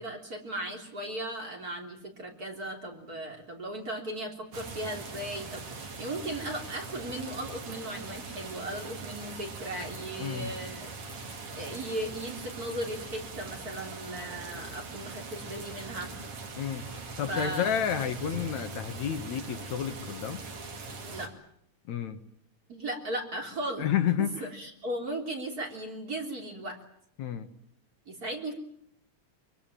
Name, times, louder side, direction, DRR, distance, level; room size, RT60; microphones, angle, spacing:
voice 1, 0.0-10.9 11.5-16.1 17.3-17.8 21.1-21.3 22.7-23.9 24.2-26.8 28.1-28.5, right 1 dB, 30° right, 2 dB, 3.8 m, -37 dB
sound 1, 4.5-21.3, right 3 dB, 50° right, 3.5 m, -41 dB
voice 2, 10.2-10.5 16.6-20.4 21.9-22.2 23.8-24.5 27.2-27.5, left 9 dB, 70° left, 8 dB, 2.6 m, -31 dB
24.0 x 23.0 x 9.0 m, 0.70 s
omnidirectional pair, 3.5 m